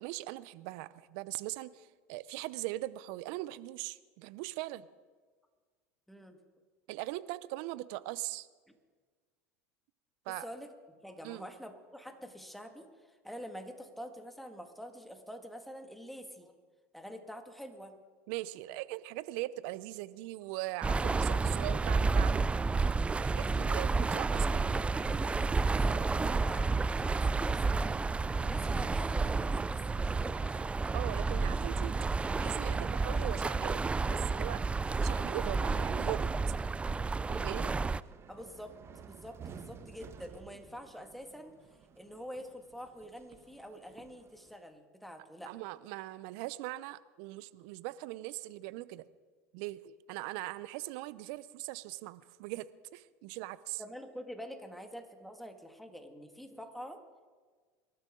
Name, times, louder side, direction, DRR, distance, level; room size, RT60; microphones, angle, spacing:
voice 1, 0.0-4.9 6.9-8.5 10.3-10.5 11.2-11.5 18.3-22.5 23.2-24.8 30.9-32.1 32.4-33.8 34.1-34.6 35.0-36.5 37.3-37.7 45.5-49.0 49.5-53.8, right 17 dB, 65° right, 17 dB, 0.7 m, -40 dB
voice 2, 6.1-6.4 10.4-12.9 13.2-16.5 16.9-18.0 24.3-27.9 28.4-30.7 38.3-41.6 42.0-45.5 53.8-57.0, equal, ahead, 5 dB, 2.2 m, -46 dB
sound 1, 20.8-38.0, right 4 dB, 15° right, 0.4 m, -30 dB
sound 2, 33.7-44.6, right 7 dB, 35° right, 1.2 m, -53 dB
25.0 x 13.0 x 3.9 m, 1.5 s
hypercardioid pair, 85°, 8 cm